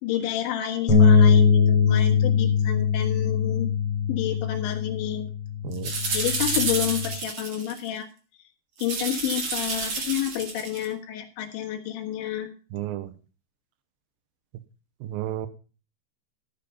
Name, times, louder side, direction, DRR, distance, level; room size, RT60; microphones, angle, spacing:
voice 1, 0.0-3.7 4.1-5.3 5.6-5.7 6.1-8.1 8.8-12.5, left 11 dB, 75° left, 3.9 m, -30 dB
sound 1, 0.9-7.1, left 6 dB, 40° left, 2.3 m, -21 dB
sound 2, 5.7-7.9 8.8-10.9, right 4 dB, 45° right, 1.8 m, -29 dB
voice 2, 12.7-13.1 15.0-15.5, right 13 dB, 85° right, 2.1 m, -32 dB
13.0 x 6.9 x 5.4 m
omnidirectional pair, 5.3 m